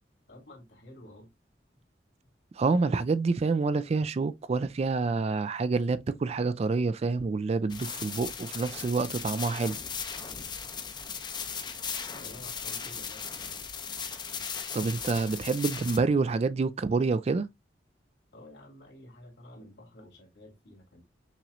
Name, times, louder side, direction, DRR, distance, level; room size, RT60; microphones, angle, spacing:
voice 1, 0.3-1.3 12.1-13.2 18.3-21.0, left 1 dB, 75° left, 2.3 m, -50 dB
voice 2, 2.6-9.8 14.7-17.5, right 4 dB, 35° right, 0.3 m, -27 dB
sound 1, 7.7-16.0, left 6 dB, 25° left, 0.5 m, -37 dB
6.0 x 3.0 x 2.5 m
head